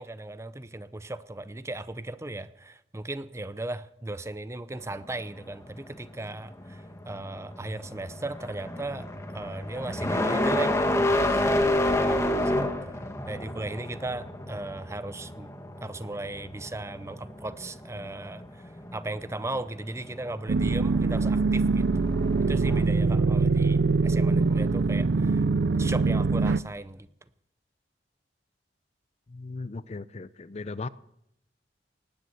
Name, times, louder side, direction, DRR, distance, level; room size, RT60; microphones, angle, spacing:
voice 1, 0.0-9.1 9.3-12.9 13.3-15.5 15.8-22.2 22.5-25.4 25.8-27.1, right 2 dB, 15° right, 14 dB, 0.7 m, -37 dB
sound 1, 4.8-22.8, left 1 dB, 15° left, 1.6 m, -30 dB
sound 2, 20.5-26.6, right 3 dB, 70° right, 0.5 m, -23 dB
voice 2, 29.3-30.9, left 3 dB, 35° left, 16 dB, 0.5 m, -37 dB
19.0 x 9.5 x 7.9 m, 0.77 s
head